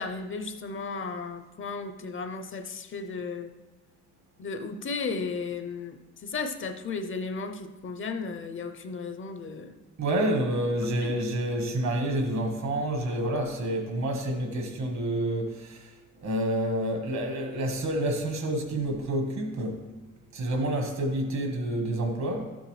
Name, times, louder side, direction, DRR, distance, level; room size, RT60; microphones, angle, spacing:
voice 1, 0.0-3.5 4.4-9.7 11.0-11.2, left 4 dB, 45° left, 8 dB, 0.6 m, -35 dB
voice 2, 10.0-19.9 20.3-22.5, right 1 dB, 65° right, 4 dB, 1.5 m, -28 dB
12.5 x 7.9 x 3.2 m, 1.2 s
wide cardioid pair, 165°, 29 cm